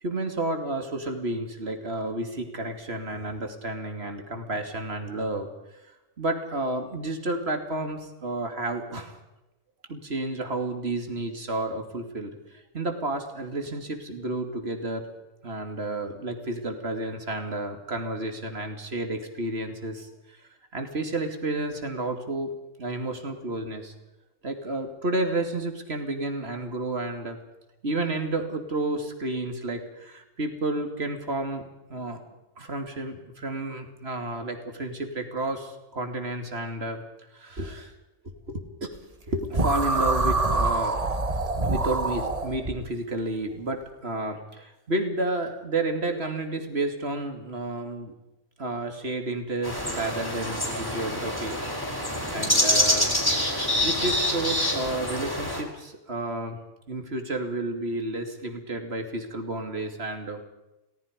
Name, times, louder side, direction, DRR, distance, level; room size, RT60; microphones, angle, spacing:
voice 1, 0.0-5.5 6.2-9.2 9.9-12.4 12.7-15.1 15.4-20.4 20.7-22.5 22.8-23.9 24.4-27.4 27.8-32.2 32.6-37.0 37.3-37.9 38.5-38.6 39.3-41.0 41.6-48.1 48.6-51.6 52.3-53.1 53.8-56.6 56.9-60.4, right 2 dB, 55° right, 5 dB, 3.0 m, -31 dB
sound 1, 39.5-42.7, right 3 dB, 30° right, 1.5 m, -25 dB
sound 2, 49.6-55.6, left 1 dB, 15° left, 4.9 m, -26 dB
30.0 x 18.5 x 5.3 m, 0.95 s
omnidirectional pair, 1.3 m